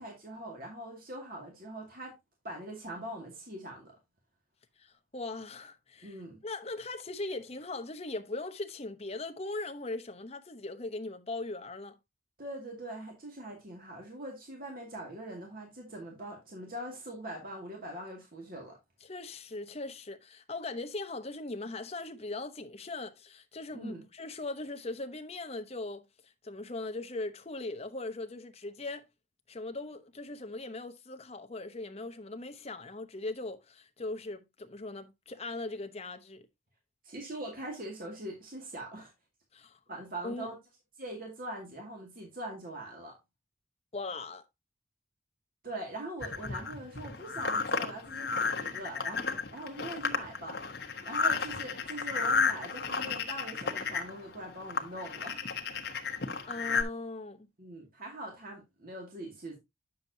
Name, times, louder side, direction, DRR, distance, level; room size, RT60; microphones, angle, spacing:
voice 1, 0.0-2.1 2.4-3.9 6.0-6.4 12.4-18.8 23.7-24.0 37.0-39.1 39.9-40.6 41.0-43.2 45.6-50.6 51.0-55.4 57.6-59.6, right 1 dB, 50° right, 2.2 m, -42 dB
voice 2, 4.8-12.0 19.0-29.1 29.5-36.5 39.5-39.8 40.2-40.5 43.9-44.4 56.5-57.5, left 2 dB, 35° left, 0.9 m, -39 dB
sound 1, 46.2-56.8, left 5 dB, 60° left, 1.1 m, -33 dB
9.2 x 6.8 x 2.7 m
head